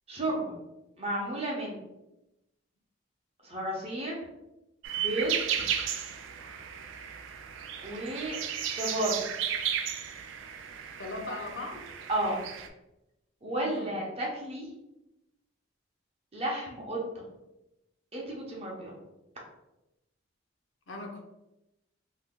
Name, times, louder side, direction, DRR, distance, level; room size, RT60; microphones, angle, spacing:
voice 1, 0.1-0.5 1.0-1.8 3.4-4.1 5.0-5.6 7.8-8.4 8.8-9.3 12.1-12.4 13.4-14.7 16.3-17.0 18.1-19.0, right 1 dB, 30° right, -3 dB, 0.7 m, -32 dB
sound 1, 4.8-12.7, right 9 dB, 75° right, 0.3 m, -34 dB
voice 2, 11.0-11.9 13.6-13.9 20.9-21.3, left 2 dB, 75° left, 2 dB, 0.6 m, -39 dB
2.7 x 2.1 x 3.6 m, 0.93 s
head